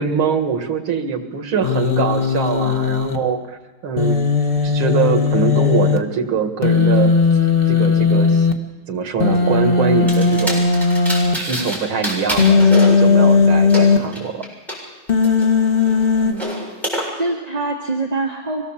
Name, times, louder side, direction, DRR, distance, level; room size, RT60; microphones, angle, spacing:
voice 1, 0.0-4.3 4.6-7.1 7.7-8.5 8.9-10.7 11.3-14.4, right 6 dB, 75° right, 6 dB, 2.5 m, -23 dB
Human voice, 1.6-3.2 4.0-6.0 6.6-8.5 9.2-11.3 12.4-14.0 15.1-16.3, left 5 dB, 30° left, 1.5 m, -16 dB
sound 1, 10.1-11.8 12.0-14.8 15.2-17.0, equal, ahead, 7.4 m, -28 dB
voice 2, 16.2-16.6 17.2-18.6, right 3 dB, 20° right, -1 dB, 2.0 m, -24 dB
24.5 x 17.5 x 7.3 m, 1.2 s
omnidirectional pair, 2.2 m